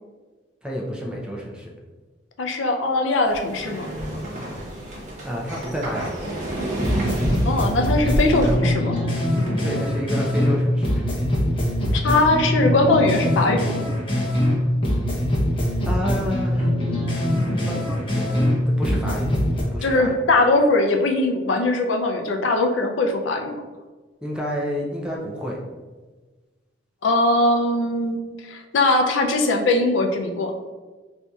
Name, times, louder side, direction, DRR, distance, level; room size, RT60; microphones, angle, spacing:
voice 1, 0.6-1.7 5.2-6.3 9.6-11.1 15.9-16.7 17.6-19.3 19.7-20.2 24.2-25.6, equal, 5° right, -3 dB, 0.4 m, -30 dB
voice 2, 2.4-3.9 7.4-9.0 11.9-13.8 19.8-23.6 27.0-30.5, left 2 dB, 80° left, 3 dB, 0.4 m, -21 dB
sound 1, 3.3-8.5, right 1 dB, 40° right, 0.8 m, -29 dB
sound 2, 5.6-6.4 6.7-7.1 7.7-7.9 8.3-9.1 9.4-9.8 10.4-10.5 11.0-11.1, equal, 70° right, 0.8 m, -38 dB
sound 3, 6.5-6.6 6.8-10.6 10.8-14.6 14.8-18.6 18.8-19.6, left 1 dB, 25° left, 0.7 m, -23 dB
4.3 x 2.6 x 2.3 m, 1.3 s
head